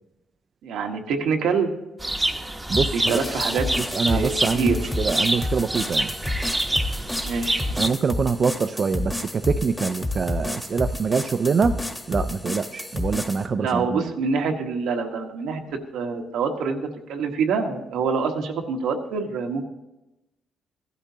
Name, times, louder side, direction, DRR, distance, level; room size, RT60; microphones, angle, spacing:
voice 1, 0.6-1.7 2.9-3.6 4.0-4.8 7.2-7.8 13.6-15.6 15.9-19.6, right 5 dB, 85° right, 3 dB, 1.2 m, -26 dB
sound 1, 2.0-7.9, right 1 dB, 10° right, 0.8 m, -27 dB
sound 2, 2.7-13.5, left 2 dB, 10° left, 1.2 m, -30 dB
voice 2, 2.7-3.2 3.8-6.1 7.8-14.1, right 5 dB, 45° right, 9 dB, 0.4 m, -25 dB
15.0 x 12.0 x 2.8 m, 0.96 s
cardioid pair, 90°, 0 cm